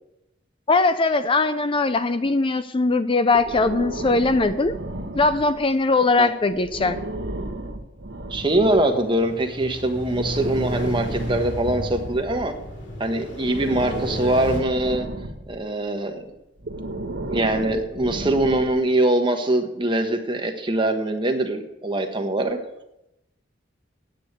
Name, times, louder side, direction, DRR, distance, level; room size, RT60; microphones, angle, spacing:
voice 1, 0.7-4.7 5.1-7.0, left 3 dB, 30° left, 11 dB, 0.5 m, -20 dB
Breathing, 3.3-5.7 6.5-8.9 10.0-12.8 13.4-15.6 16.6-18.9, right 1 dB, 70° right, 1.2 m, -33 dB
voice 2, 8.3-12.5 13.0-15.0 15.5-16.2 17.3-22.6, right 1 dB, 25° right, 5 dB, 1.3 m, -23 dB
sound 1, 8.6-14.6, equal, 70° left, 2.8 m, -33 dB
9.2 x 8.5 x 8.1 m, 0.88 s
head